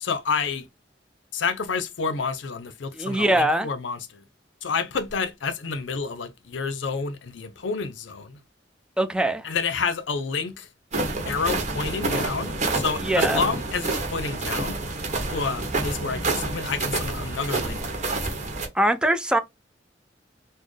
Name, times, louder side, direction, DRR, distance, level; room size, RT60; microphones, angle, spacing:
voice 1, 0.0-0.6 1.3-4.2 4.6-8.4 9.4-10.7 11.3-14.8 15.3-18.2, left 5 dB, 80° left, 0.6 m, -29 dB
voice 2, 2.9-3.7 9.0-9.5 13.0-13.4 18.7-19.4, right 1 dB, 5° right, 0.3 m, -22 dB
sound 1, 10.9-18.7, right 2 dB, 40° right, 0.9 m, -28 dB
4.1 x 2.1 x 3.1 m
head